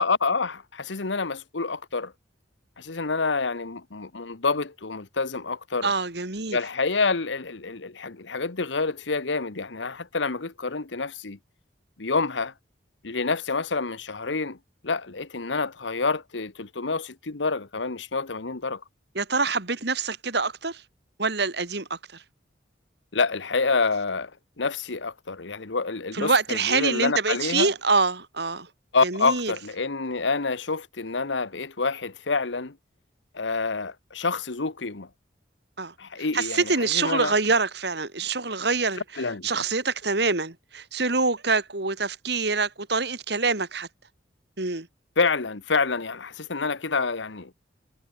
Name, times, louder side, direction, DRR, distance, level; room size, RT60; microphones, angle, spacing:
voice 1, 0.0-2.1 2.8-5.9 6.5-11.4 12.0-12.5 13.0-14.6 14.8-18.8 23.1-24.3 24.6-27.7 28.9-32.8 33.3-35.1 36.0-37.3 39.2-39.5 45.2-47.5, left 4 dB, 85° left, 1.3 m, -27 dB
voice 2, 5.8-6.6 19.1-20.8 21.2-22.2 26.1-28.7 29.0-29.5 35.8-35.9 36.3-39.0 39.4-43.9 44.6-44.9, right 4 dB, 60° right, 2.5 m, -25 dB
head